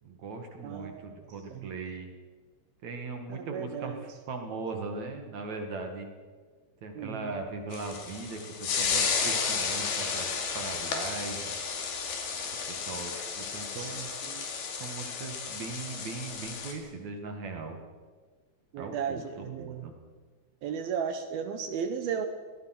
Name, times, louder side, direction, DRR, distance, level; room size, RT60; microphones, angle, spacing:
voice 1, 0.0-2.1 2.8-6.1 6.8-10.3 10.5-11.6 12.7-14.1 14.8-17.8 18.8-19.9, right 3 dB, 50° right, 4 dB, 2.3 m, -39 dB
voice 2, 0.6-1.7 3.3-4.0 7.0-7.4 13.8-14.5 18.7-19.9 20.6-22.3, right 7 dB, 75° right, 8 dB, 2.2 m, -35 dB
sound 1, 7.7-16.7, left 5 dB, 55° left, 4.1 m, -33 dB
23.5 x 18.5 x 6.0 m, 1.4 s
omnidirectional pair, 5.8 m